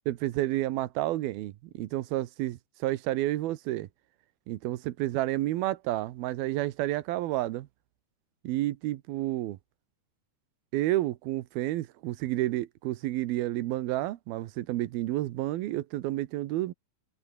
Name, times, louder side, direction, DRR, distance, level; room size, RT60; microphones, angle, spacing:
voice 1, 0.1-3.9 4.5-7.7 8.4-9.6 10.7-16.7, right 15 dB, 80° right, 2.9 m, -30 dB
omnidirectional pair, 4.3 m